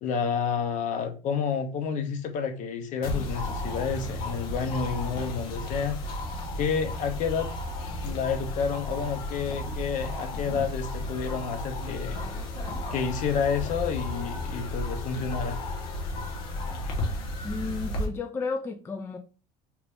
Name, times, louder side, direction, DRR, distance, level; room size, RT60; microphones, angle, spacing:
voice 1, 0.0-6.0 6.6-7.5 8.0-12.2 12.9-15.6, left 6 dB, 50° left, 0.7 m, -30 dB
sound 1, 3.0-18.1, left 1 dB, 70° left, 1.1 m, -33 dB
voice 2, 17.4-19.2, left 4 dB, 15° left, 0.3 m, -33 dB
2.9 x 2.5 x 3.4 m
cardioid pair, 130°, 16 cm